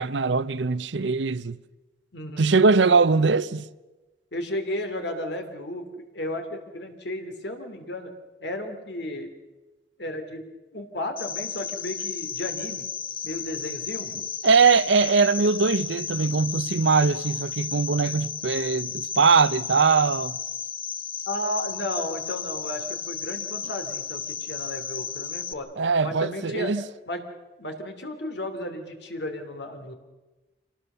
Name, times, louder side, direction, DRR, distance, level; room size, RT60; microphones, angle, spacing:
voice 1, 0.0-1.6 2.4-3.7 14.4-20.4 25.8-26.8, right 4 dB, 80° right, 0.7 m, -21 dB
voice 2, 2.1-2.6 4.3-5.8 6.1-8.1 8.4-9.3 10.0-10.4 10.7-12.8 13.2-14.1 21.3-25.7 26.0-26.7 27.1-27.2 27.6-29.9, left 1 dB, 65° left, 2.9 m, -33 dB
Cricket, 11.2-25.5, left 8 dB, 30° left, 0.8 m, -33 dB
26.0 x 19.0 x 6.8 m
head